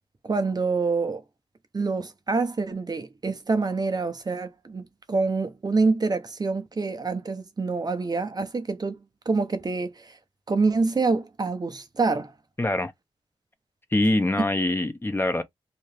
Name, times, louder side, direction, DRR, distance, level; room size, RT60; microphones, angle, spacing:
voice 1, 0.2-1.2 1.7-9.0 9.3-10.2 10.5-12.3, right 4 dB, 35° right, 0.6 m, -26 dB
voice 2, 12.6-12.9 13.9-15.4, left 1 dB, 20° left, 0.6 m, -24 dB
2.8 x 2.4 x 3.2 m
wide cardioid pair, 80°, 11 cm